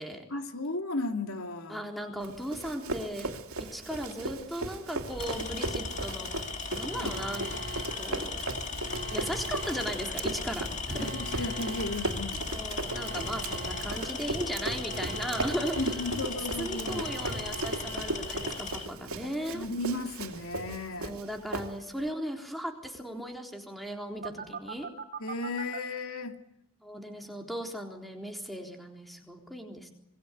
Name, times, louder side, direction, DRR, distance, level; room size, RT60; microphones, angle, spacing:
voice 1, 0.3-1.9 7.0-7.2 11.0-12.4 15.8-17.1 19.5-21.2 25.2-26.4, left 2 dB, 80° left, 6 dB, 2.5 m, -34 dB
voice 2, 1.7-3.3 3.7-6.4 6.7-7.5 8.0-8.4 9.1-11.5 12.5-16.0 16.2-19.7 21.0-24.9 26.8-29.9, equal, ahead, 2 dB, 3.8 m, -37 dB
Run, 2.2-22.1, right 2 dB, 85° right, 2.9 m, -37 dB
Tools, 4.0-4.2 5.1-18.9, left 4 dB, 35° left, 2.0 m, -37 dB
Alarm, 6.9-18.8 24.2-25.8, right 3 dB, 45° right, 2.9 m, -43 dB
27.0 x 21.5 x 8.3 m, 0.88 s
head